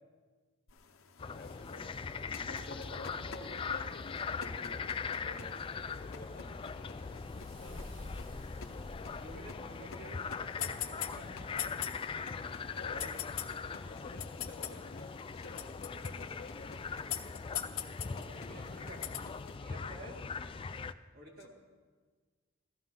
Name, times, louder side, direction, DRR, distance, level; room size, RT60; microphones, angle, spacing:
sound 1, 0.7-19.6, left 9 dB, 70° left, 0.9 m, -46 dB
voice 1, 1.2-2.0 2.2-7.9 12.6-13.3 13.6-16.9 21.4-21.5, left 2 dB, 50° left, 3 dB, 1.3 m, -51 dB
sound 2, 1.2-20.9, left 5 dB, 25° left, 0.3 m, -41 dB
sound 3, 5.6-10.6, left 1 dB, 65° right, 4.0 m, -51 dB
voice 2, 9.1-11.7 18.1-19.1 19.6-20.2 21.1-21.5, right 1 dB, 45° right, -1 dB, 2.3 m, -51 dB
16.0 x 14.0 x 3.7 m, 1.5 s
head